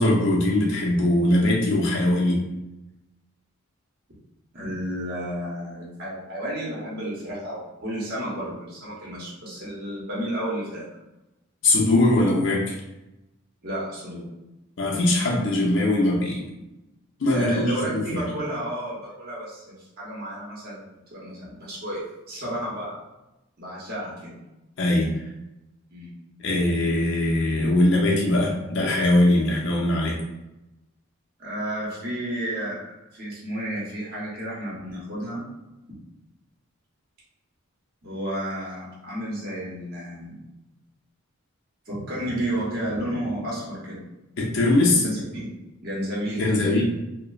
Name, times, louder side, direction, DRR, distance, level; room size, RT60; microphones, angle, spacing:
voice 1, 0.0-2.4 11.6-12.8 14.8-16.4 17.2-17.7 17.9-18.2 24.8-25.1 26.4-30.2 44.4-45.0 46.4-46.8, left 1 dB, 60° left, -2 dB, 0.5 m, -21 dB
voice 2, 4.5-10.9 13.6-14.2 17.3-22.0 22.3-22.9 23.6-24.4 25.9-26.1 31.4-32.8 33.1-35.4 38.0-40.4 41.9-44.0 45.0-45.5 45.8-46.8, right 1 dB, 45° right, -7 dB, 0.8 m, -31 dB
2.9 x 2.0 x 2.3 m, 0.97 s
head